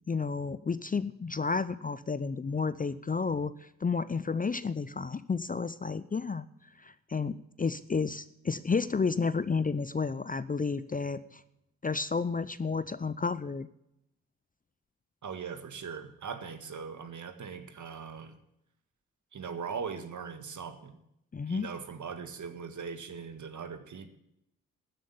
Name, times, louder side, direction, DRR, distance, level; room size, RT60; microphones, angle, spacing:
voice 1, 0.1-6.4 6.8-11.4 11.8-13.7 21.3-21.7, left 4 dB, 25° left, 14 dB, 0.6 m, -31 dB
voice 2, 15.2-18.4 19.3-21.0 21.5-24.1, right 6 dB, 50° right, 8 dB, 1.7 m, -40 dB
12.5 x 7.7 x 8.6 m, 0.80 s
hypercardioid pair, 40°, 37 cm